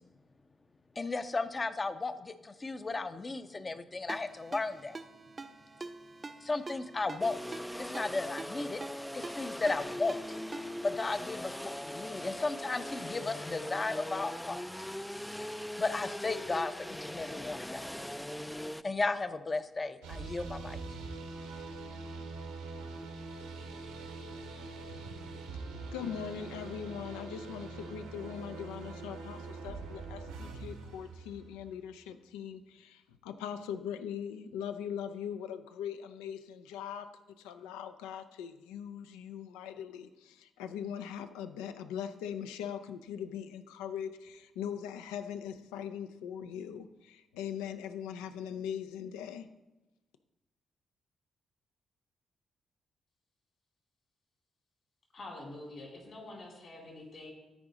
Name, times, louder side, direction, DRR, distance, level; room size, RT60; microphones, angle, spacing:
voice 1, 1.0-4.9 6.4-7.4 7.8-8.8 9.1-10.2 10.8-14.6 15.8-17.9 18.8-20.8, left 3 dB, 35° left, 11 dB, 0.7 m, -34 dB
Ringtone, 4.1-11.0, right 3 dB, 35° right, 0.6 m, -46 dB
sound 1, 7.2-18.8, left 1 dB, 5° left, 0.3 m, -40 dB
sound 2, 20.0-31.9, right 3 dB, 85° right, 1.0 m, -43 dB
voice 2, 25.9-37.1 37.4-49.5, left 8 dB, 80° left, 10 dB, 0.4 m, -41 dB
voice 3, 55.1-57.3, left 2 dB, 55° left, -1 dB, 3.3 m, -46 dB
13.5 x 4.8 x 3.8 m, 1.0 s
hypercardioid pair, 40°, 0 cm